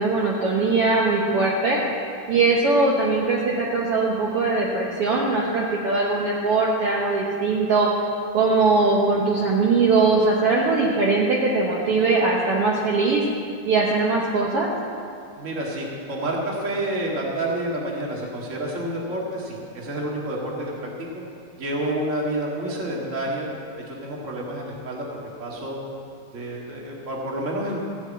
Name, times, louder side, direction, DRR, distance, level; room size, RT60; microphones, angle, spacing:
voice 1, 0.0-1.8 2.3-7.9 8.3-13.2 13.7-14.7, right 3 dB, 60° right, -4 dB, 1.8 m, -21 dB
voice 2, 15.4-21.2 21.6-23.5 23.9-25.1 25.4-25.8 26.3-27.8, right 1 dB, 30° right, -2 dB, 1.9 m, -29 dB
15.0 x 6.2 x 8.5 m, 2.4 s
omnidirectional pair, 3.4 m